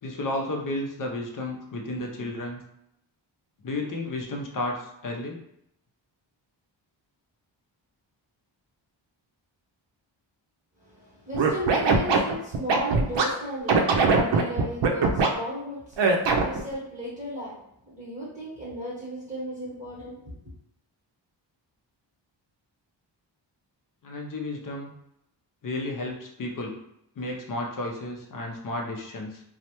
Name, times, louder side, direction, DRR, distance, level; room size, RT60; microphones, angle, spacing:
voice 1, 0.0-2.6 3.6-5.4 24.0-24.9 25.6-26.7 27.2-29.4, left 2 dB, 45° left, 1 dB, 0.5 m, -32 dB
voice 2, 10.8-17.6 17.9-20.4, equal, 15° right, -8 dB, 1.0 m, -35 dB
Scratching (performance technique), 11.3-13.2 13.7-15.3 16.0-16.6, right 4 dB, 70° right, 0.5 m, -21 dB
3.2 x 2.0 x 2.8 m, 0.78 s
wide cardioid pair, 170°, 45 cm